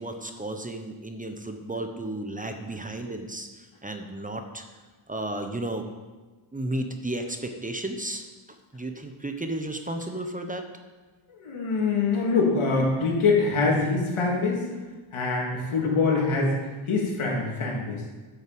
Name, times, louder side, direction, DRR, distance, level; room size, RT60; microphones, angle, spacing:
voice 1, 0.0-4.6 5.1-5.8 6.5-8.2 8.7-10.6, right 1 dB, 15° right, 5 dB, 1.1 m, -33 dB
voice 2, 11.3-14.6 15.1-16.6 16.9-18.0, left 4 dB, 80° left, -2 dB, 3.2 m, -24 dB
11.0 x 6.8 x 7.9 m, 1.3 s
cardioid pair, 90°, 48 cm